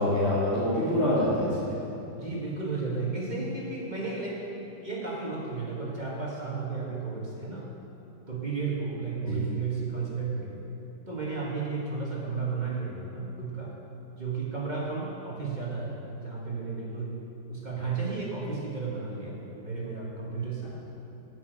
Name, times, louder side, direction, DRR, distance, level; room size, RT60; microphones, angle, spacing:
voice 1, 0.0-1.7 9.3-9.4, left 1 dB, 35° left, -12 dB, 2.6 m, -25 dB
voice 2, 2.1-4.4 4.8-7.7 8.3-10.6 11.1-13.8 14.2-17.2 17.5-20.7, right 4 dB, 25° right, -4 dB, 1.4 m, -33 dB
11.5 x 6.2 x 7.8 m, 2.8 s
omnidirectional pair, 2.2 m